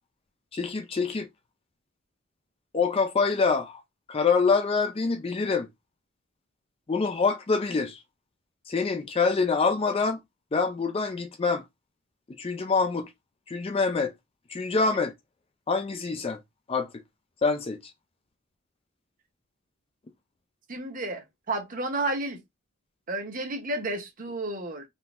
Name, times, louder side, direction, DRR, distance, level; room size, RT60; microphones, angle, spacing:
voice 1, 0.5-1.3 2.7-3.8 4.1-5.7 6.9-8.0 8.7-10.2 10.5-11.6 12.4-13.1 13.5-14.1 14.5-15.1 15.7-16.4 16.7-16.9 17.4-17.8, left 4 dB, 25° left, 0.3 m, -25 dB
voice 2, 20.7-22.4 23.1-24.8, right 2 dB, 40° right, 0.8 m, -31 dB
3.7 x 2.7 x 2.4 m
head